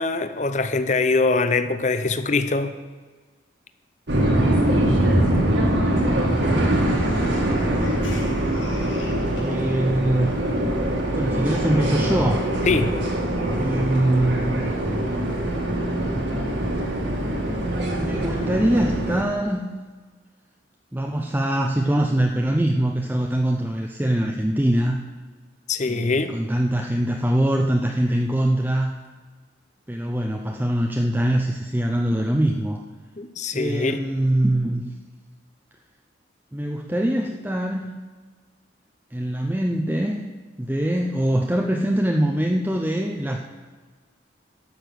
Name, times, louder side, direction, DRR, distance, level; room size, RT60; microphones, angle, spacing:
voice 1, 0.0-2.7 12.7-12.9 25.7-26.4 33.2-34.0, left 3 dB, 40° left, 11 dB, 0.6 m, -23 dB
sound 1, 4.1-19.2, right 1 dB, 65° right, 2.2 m, -23 dB
voice 2, 6.2-6.8 9.4-10.4 11.1-12.5 13.5-14.6 18.0-19.7 20.9-25.0 25.8-28.9 29.9-32.8 33.5-34.8 36.5-38.0 39.1-40.2 40.6-43.4, right 1 dB, 10° right, 2 dB, 0.5 m, -23 dB
sound 2, 6.9-9.8, left 2 dB, 85° left, 2.1 m, -41 dB
12.0 x 6.5 x 7.9 m, 1.4 s
head